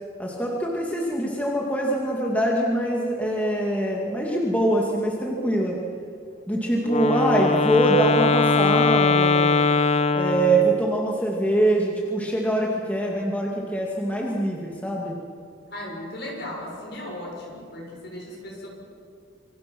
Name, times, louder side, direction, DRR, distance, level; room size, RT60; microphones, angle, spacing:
voice 1, 0.2-5.8 6.5-9.6 10.1-15.2, right 1 dB, 10° left, -2 dB, 2.2 m, -24 dB
Wind instrument woodwind instrument, 6.8-11.0, left 4 dB, 30° left, 0.8 m, -21 dB
voice 2, 15.7-18.7, left 1 dB, 55° left, -1 dB, 6.7 m, -36 dB
27.0 x 25.5 x 6.1 m, 2.3 s
head